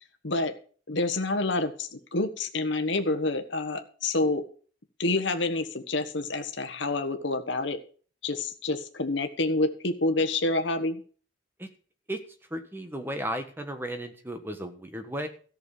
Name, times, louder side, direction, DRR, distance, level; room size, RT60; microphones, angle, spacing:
voice 1, 0.9-4.4 5.0-7.8 8.2-11.0, left 2 dB, 65° left, 8 dB, 1.4 m, -28 dB
voice 2, 12.5-15.3, right 1 dB, 10° right, 7 dB, 1.4 m, -34 dB
14.0 x 6.7 x 7.0 m, 0.43 s
head